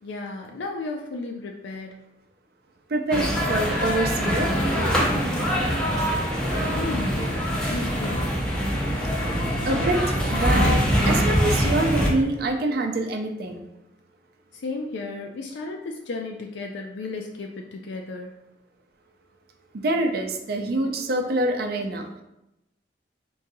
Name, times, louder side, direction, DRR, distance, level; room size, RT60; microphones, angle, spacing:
voice 1, 0.0-2.1 6.7-7.4 7.7-8.4 14.5-18.4, left 3 dB, 85° left, 2 dB, 0.4 m, -34 dB
voice 2, 2.9-4.5 9.6-13.7 19.7-22.2, right 2 dB, 60° right, 5 dB, 0.5 m, -26 dB
sound 1, 3.1-12.1, equal, 5° left, 0.7 m, -23 dB
4.0 x 3.8 x 2.7 m, 0.87 s
head